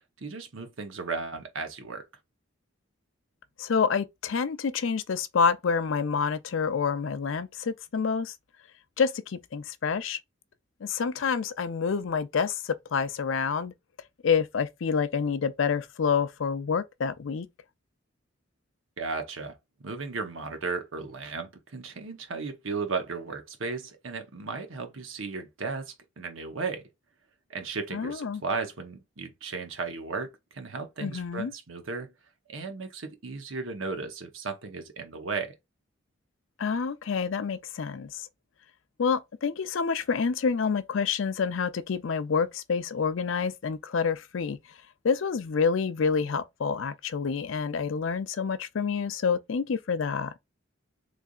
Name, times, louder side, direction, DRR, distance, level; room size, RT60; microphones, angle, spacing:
voice 1, 0.2-2.1 19.0-19.6 19.8-26.8 27.5-32.1 32.5-35.5, right 4 dB, 80° right, 0.9 m, -35 dB
voice 2, 3.6-8.3 9.0-10.2 10.8-13.7 14.2-17.5 27.9-28.4 31.0-31.5 36.6-38.3 39.0-44.6 45.0-50.3, left 6 dB, 75° left, 0.5 m, -28 dB
3.8 x 3.3 x 2.3 m
head